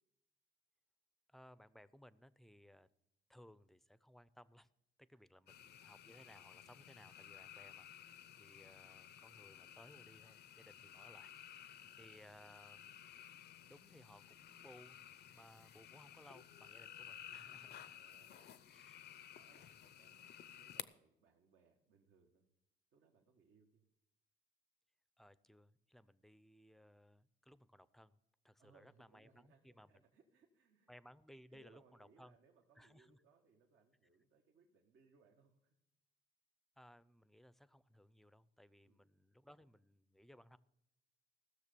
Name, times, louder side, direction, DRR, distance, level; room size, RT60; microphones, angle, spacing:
voice 1, 1.3-2.9 3.3-4.7 5.0-13.0 13.7-18.0 18.7-19.0 19.5-19.7 25.2-28.2 28.4-30.0 30.9-32.4 32.8-33.2 36.8-40.6, equal, ahead, 17 dB, 0.5 m, -62 dB
voice 2, 5.1-5.9 10.8-11.5 17.9-18.6 19.3-22.5 22.9-23.9 28.6-30.9 31.5-35.8 38.8-39.1, right 4 dB, 80° right, 0 dB, 1.5 m, -71 dB
sound 1, 5.5-20.8, left 10 dB, 55° left, 0.6 m, -55 dB
15.5 x 6.6 x 6.8 m, 0.84 s
cardioid pair, 90°, 20 cm